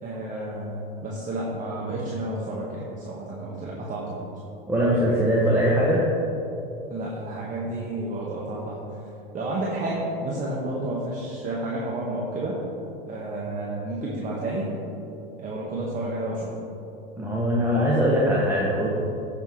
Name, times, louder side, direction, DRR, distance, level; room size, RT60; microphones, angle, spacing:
voice 1, 0.0-4.2 6.9-8.8 9.3-12.6 13.1-14.7 15.4-16.5, right 1 dB, 30° right, -4 dB, 1.4 m, -31 dB
voice 2, 4.7-6.0 17.2-18.9, equal, 5° right, -5 dB, 1.3 m, -21 dB
14.5 x 5.9 x 3.2 m, 2.8 s
hypercardioid pair, 90°, 29 cm